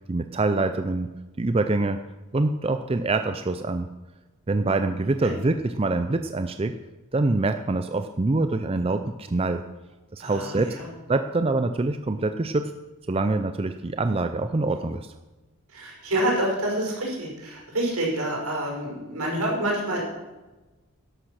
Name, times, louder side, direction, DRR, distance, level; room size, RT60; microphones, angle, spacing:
voice 1, 0.1-1.1 1.4-2.0 2.3-3.9 4.5-6.7 7.1-9.6 10.1-10.8 11.1-12.7 13.1-15.1, right 2 dB, 25° right, 8 dB, 0.4 m, -25 dB
voice 2, 10.2-10.9 15.7-20.0, right 1 dB, 80° right, -2 dB, 5.4 m, -27 dB
12.0 x 11.5 x 6.5 m, 1.1 s
head